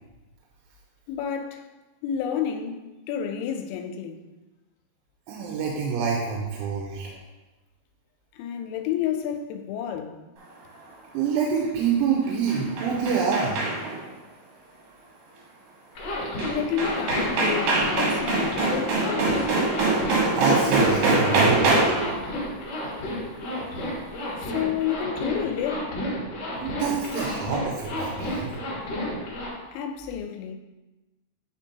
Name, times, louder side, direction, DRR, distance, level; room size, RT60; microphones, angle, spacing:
voice 1, 1.1-1.6 2.0-2.8 3.1-4.2 8.3-10.2 16.5-19.5 24.4-25.9 29.7-30.6, left 9 dB, 85° left, 2.9 m, -30 dB
voice 2, 5.3-7.2 11.1-13.6 20.4-21.8 26.6-28.6, right 6 dB, 90° right, 3.1 m, -26 dB
sound 1, 12.3-14.0 16.4-16.5 16.8-22.1, right 2 dB, 70° right, 2.4 m, -23 dB
Zipper (clothing), 15.9-29.5, equal, 60° left, 1.7 m, -31 dB
8.8 x 4.5 x 2.8 m
omnidirectional pair, 5.4 m